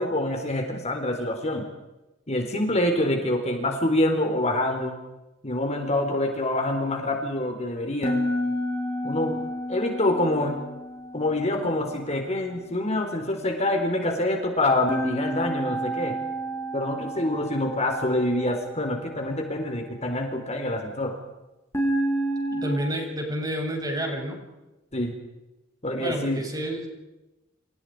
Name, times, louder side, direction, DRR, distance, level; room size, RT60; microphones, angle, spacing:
voice 1, 0.0-1.7 2.3-5.0 5.4-8.2 9.0-9.4 9.7-10.6 11.1-16.2 16.7-21.2 24.9-25.1 25.8-26.4, left 1 dB, 35° left, 4 dB, 4.3 m, -26 dB
sound 1, 8.0-12.2 14.9-19.0 21.7-22.8, equal, 15° left, 7.1 m, -30 dB
voice 2, 22.5-24.4 26.0-26.9, equal, 20° right, 1 dB, 7.6 m, -29 dB
29.5 x 29.0 x 5.1 m, 0.99 s
head